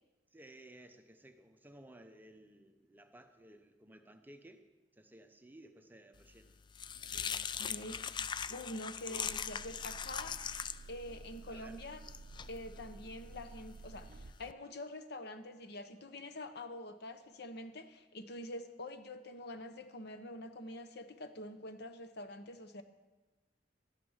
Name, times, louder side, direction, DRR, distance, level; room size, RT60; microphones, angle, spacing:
voice 1, 0.3-4.7 4.9-6.6 7.1-7.3 10.2-10.4 11.5-11.9, right 1 dB, 10° right, 7 dB, 0.7 m, -57 dB
sound 1, 6.2-14.5, left 7 dB, 25° left, 0.3 m, -42 dB
voice 2, 7.3-8.1 8.5-10.4 10.9-12.0 12.5-22.8, left 1 dB, 60° left, 9 dB, 0.9 m, -46 dB
sound 2, 9.2-14.3, right 3 dB, 55° right, 0.5 m, -52 dB
12.0 x 11.0 x 5.6 m, 1.2 s
head